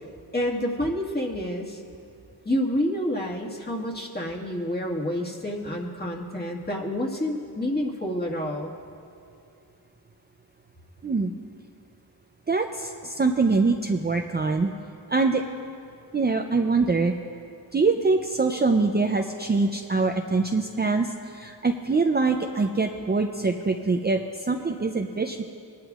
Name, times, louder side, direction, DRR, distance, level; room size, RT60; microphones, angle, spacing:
voice 1, 0.3-1.8 2.5-8.7, left 1 dB, 25° left, -2 dB, 1.8 m, -28 dB
voice 2, 12.5-14.7 15.1-15.4 16.1-17.1 17.7-21.1 21.3-24.2 24.5-25.4, right 3 dB, 25° right, 4 dB, 0.5 m, -24 dB
20.5 x 11.0 x 2.4 m, 2.6 s
cardioid pair, 65°, 40 cm